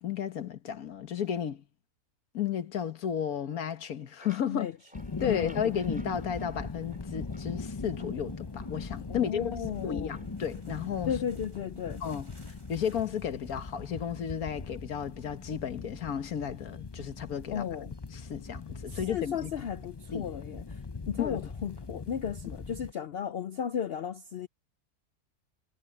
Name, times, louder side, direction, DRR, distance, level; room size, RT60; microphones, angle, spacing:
voice 1, 0.0-1.6 2.3-4.7 5.2-9.6 9.8-11.2 12.0-12.3 12.7-17.7 18.1-19.5 20.1-20.3 21.2-21.5, left 8 dB, 65° left, 1.6 m, -33 dB
sound 1, 3.8-7.6 8.0-9.3 10.1-10.6, equal, 5° right, 3.8 m, -57 dB
sound 2, 4.9-22.9, left 4 dB, 30° left, 0.4 m, -40 dB
voice 2, 5.2-5.6 9.1-10.1 11.1-12.0 17.5-17.9 19.1-20.8 21.1-24.5, left 8 dB, 85° left, 0.5 m, -34 dB
sound 3, 9.7-14.8, right 2 dB, 45° right, 5.7 m, -61 dB
omnidirectional pair, 1.7 m